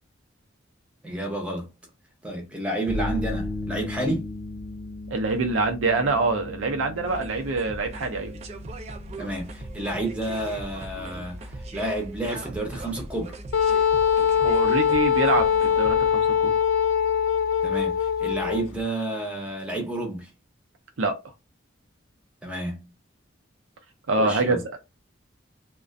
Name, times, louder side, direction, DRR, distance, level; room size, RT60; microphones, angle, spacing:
voice 1, 1.0-1.7 2.2-4.3 9.2-13.4 17.6-20.3 22.4-22.9 24.2-24.6, right 1 dB, 5° right, 0.7 m, -30 dB
sound 1, 2.9-18.8, left 1 dB, 15° left, 1.0 m, -38 dB
voice 2, 5.1-8.3 14.4-16.5 21.0-21.1 24.1-24.6, right 3 dB, 85° right, 0.5 m, -25 dB
sound 2, 7.1-16.1, right 2 dB, 35° right, 0.3 m, -40 dB
Wind instrument woodwind instrument, 13.5-18.7, left 8 dB, 80° left, 0.3 m, -22 dB
2.4 x 2.1 x 2.5 m
head